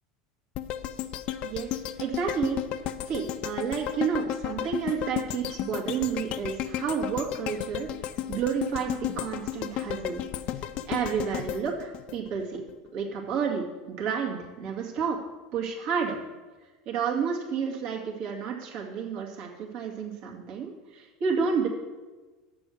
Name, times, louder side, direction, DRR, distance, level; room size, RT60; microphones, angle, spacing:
sound 1, 0.5-12.7 13.1-13.2, left 11 dB, 50° left, 0.5 m, -33 dB
voice 1, 1.4-2.6 3.1-7.9 8.3-10.2 10.9-12.6 12.9-15.2 15.5-16.2 16.9-21.7, right 6 dB, 60° right, -1 dB, 2.2 m, -30 dB
7.0 x 6.8 x 6.4 m, 1.3 s
hypercardioid pair, 80°, 2 cm